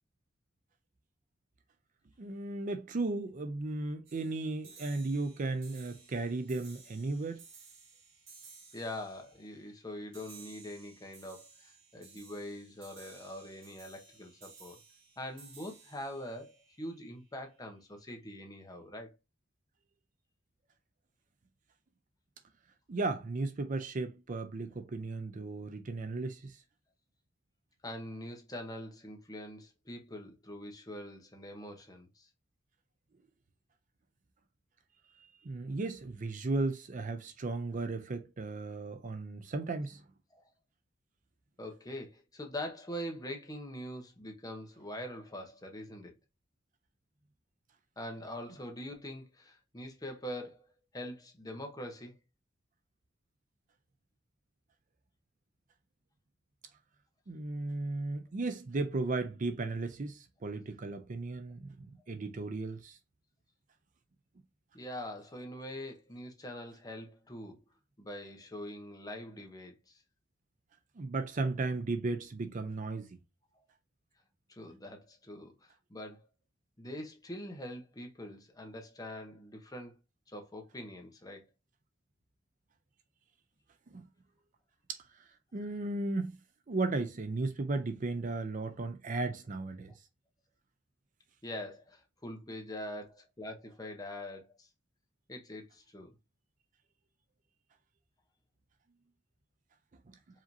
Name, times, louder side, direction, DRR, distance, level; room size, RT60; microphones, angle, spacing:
voice 1, 2.2-7.4 22.9-26.6 35.4-40.0 57.3-63.0 71.0-73.2 83.9-84.1 84.9-85.0 85.5-86.3 86.7-89.9, right 3 dB, 40° right, 0.5 m, -35 dB
sound 1, 4.1-17.5, right 5 dB, 85° right, 2.2 m, -57 dB
voice 2, 8.7-14.8 15.2-19.1 27.8-32.3 40.3-40.5 41.6-46.1 48.0-50.6 50.9-52.1 64.7-67.6 68.0-70.0 74.5-76.2 76.8-79.9 80.3-81.5 91.4-94.7 95.3-96.1, left 1 dB, 20° left, 0.9 m, -43 dB
4.9 x 2.8 x 2.7 m
head